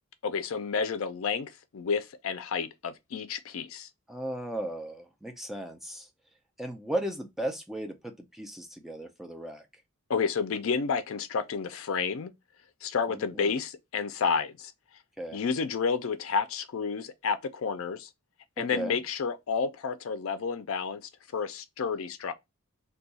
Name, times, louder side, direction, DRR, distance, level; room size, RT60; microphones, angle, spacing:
voice 1, 0.2-3.9 10.1-12.3 12.8-14.7 15.3-18.1 18.6-21.0 21.3-22.3, left 5 dB, 70° left, 0.4 m, -30 dB
voice 2, 4.1-6.1 6.6-9.8 13.1-13.5 15.2-15.4 18.6-19.0, right 1 dB, ahead, 0.4 m, -36 dB
2.7 x 2.3 x 3.9 m
head